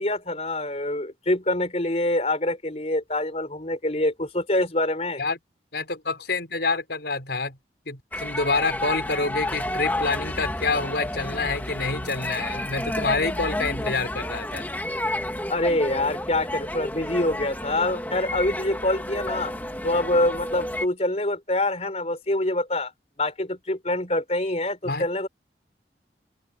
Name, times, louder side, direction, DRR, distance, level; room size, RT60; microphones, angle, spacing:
voice 1, 0.0-5.2 15.5-19.6 19.8-22.9 23.2-25.3, left 1 dB, 35° left, 4.3 m, -25 dB
voice 2, 5.7-7.6 7.9-14.7 24.8-25.0, left 3 dB, 70° left, 5.1 m, -27 dB
sound 1, 8.1-20.8, left 1 dB, 10° left, 2.1 m, -31 dB
open air
head